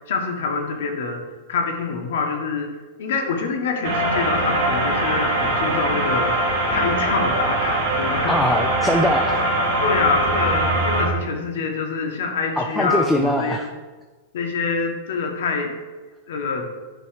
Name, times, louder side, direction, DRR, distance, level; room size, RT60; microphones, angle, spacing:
voice 1, 0.1-1.2 1.5-2.7 3.0-8.3 9.8-13.6 14.3-15.7 16.3-16.7, left 4 dB, 75° left, 3 dB, 1.3 m, -25 dB
sound 1, 3.8-11.1, right 1 dB, 70° right, 2.2 m, -22 dB
voice 2, 8.3-9.4 12.6-13.7, left 1 dB, 5° left, 2 dB, 0.4 m, -21 dB
9.2 x 3.1 x 4.8 m, 1.3 s
supercardioid pair, 145°, 0 cm